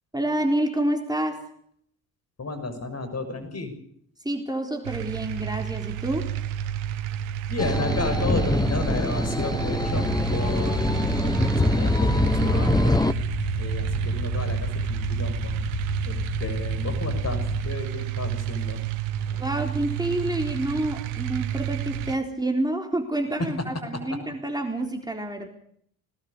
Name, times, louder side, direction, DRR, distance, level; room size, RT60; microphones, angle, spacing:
voice 1, 0.1-1.4 4.2-6.3 19.4-25.5, right 1 dB, 10° right, 3 dB, 4.0 m, -28 dB
voice 2, 2.4-3.7 7.5-13.0 13.6-15.5 16.0-18.8 19.2-19.4 23.9-24.2, left 3 dB, 40° left, 9 dB, 6.6 m, -33 dB
sound 1, 4.8-22.2, right 11 dB, 85° right, 1.2 m, -30 dB
sound 2, 7.6-13.1, left 2 dB, 10° left, 1.3 m, -24 dB
sound 3, 9.6-17.7, left 5 dB, 70° left, 5.5 m, -33 dB
21.5 x 19.0 x 6.8 m, 0.66 s
hypercardioid pair, 50°, 40 cm